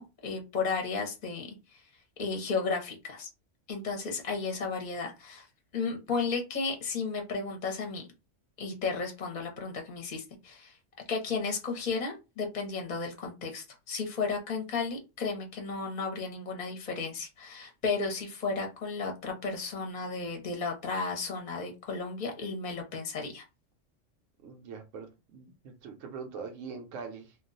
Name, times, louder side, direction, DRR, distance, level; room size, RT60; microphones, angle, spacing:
voice 1, 0.0-1.8 2.2-3.3 3.7-5.5 5.7-8.1 8.6-10.8 11.1-23.4, left 4 dB, 40° left, 0.8 m, -34 dB
voice 2, 24.4-27.4, right 5 dB, 80° right, 0.9 m, -43 dB
2.3 x 2.2 x 3.8 m
omnidirectional pair, 1.3 m